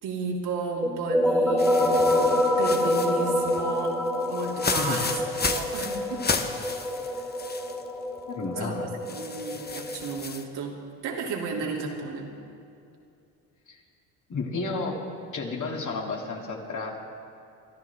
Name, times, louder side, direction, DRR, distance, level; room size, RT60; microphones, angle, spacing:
voice 1, 0.0-4.0 4.3-6.2 7.1-7.3 8.6-8.7 9.1-10.7 11.0-12.3, right 4 dB, 65° right, -1 dB, 2.9 m, -33 dB
sound 1, 0.8-10.2, left 1 dB, ahead, 2.6 m, -27 dB
sound 2, 1.6-7.8 8.2-8.3 9.1-10.4, left 4 dB, 25° left, 1.2 m, -33 dB
voice 2, 8.3-8.9 13.7-13.8 14.3-15.0 15.3-17.0, left 3 dB, 45° left, -1 dB, 2.9 m, -31 dB
24.5 x 12.5 x 3.6 m, 2.5 s
supercardioid pair, 75°, 41 cm